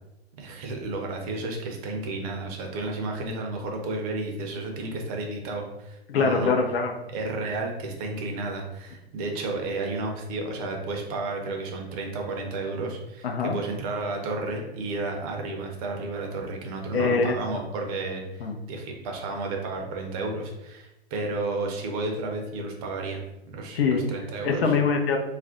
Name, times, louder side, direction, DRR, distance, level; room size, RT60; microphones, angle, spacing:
voice 1, 0.4-6.5 7.1-23.2 23.5-24.7, right 2 dB, 35° right, 2 dB, 0.6 m, -32 dB
voice 2, 6.1-6.9 13.2-13.6 16.9-17.6 18.4-18.5 23.7-24.0 24.4-25.2, left 5 dB, 65° left, 3 dB, 0.6 m, -23 dB
2.5 x 2.1 x 3.7 m, 0.94 s
hypercardioid pair, 115°, 31 cm